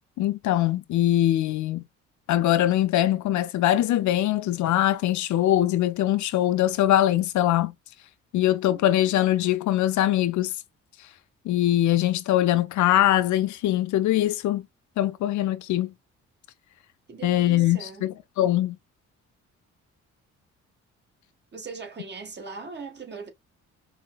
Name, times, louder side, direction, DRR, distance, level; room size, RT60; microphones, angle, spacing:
voice 1, 0.2-1.9 2.3-7.7 8.3-10.5 11.5-14.6 15.0-15.9 17.2-18.8, left 13 dB, 70° left, 0.5 m, -22 dB
voice 2, 8.7-9.2 17.1-18.0 21.5-23.3, right 5 dB, 35° right, 1.4 m, -40 dB
5.3 x 2.1 x 2.2 m
cardioid pair, 90°, 30 cm